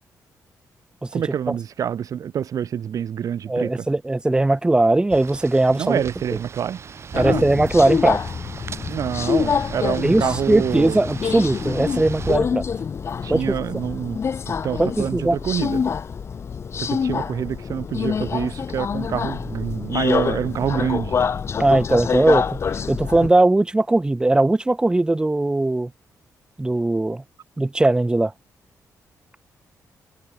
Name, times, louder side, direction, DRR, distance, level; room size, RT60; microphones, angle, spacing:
voice 1, 1.1-3.9 5.7-6.8 7.1-7.4 8.9-11.0 13.2-14.2 14.6-15.8 16.8-21.2, right 9 dB, 65° right, 2.4 m, -26 dB
voice 2, 3.5-6.0 7.1-8.2 10.0-12.6 13.3-13.4 14.8-15.4 21.6-22.6 22.9-25.9 26.6-27.2 27.6-28.3, right 2 dB, 15° right, 2.9 m, -19 dB
sound 1, 5.1-12.4, right 6 dB, 45° right, 5.1 m, -38 dB
Subway metro underground, 7.1-23.3, left 6 dB, 45° left, 2.2 m, -26 dB
cardioid pair, 130°, 6 cm